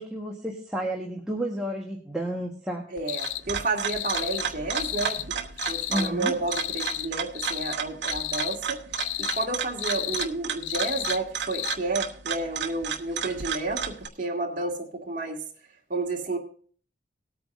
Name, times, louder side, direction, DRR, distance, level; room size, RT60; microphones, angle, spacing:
voice 1, 0.0-2.9 5.9-6.3, right 1 dB, 5° right, -2 dB, 1.4 m, -31 dB
voice 2, 2.9-5.4 5.7-8.8 9.2-15.4 15.9-16.4, right 2 dB, 45° right, 0 dB, 2.1 m, -31 dB
sound 1, 3.0-14.1, right 7 dB, 65° right, 1.1 m, -32 dB
sound 2, 3.1-3.4 3.8-4.5 4.7-5.3 5.6-6.1 6.5-7.1 7.3-7.8 8.0-8.6 8.9-9.5 9.8-10.3 10.6-11.2 11.5-11.8, left 13 dB, 85° left, 0.4 m, -32 dB
19.5 x 8.9 x 2.6 m, 0.43 s
head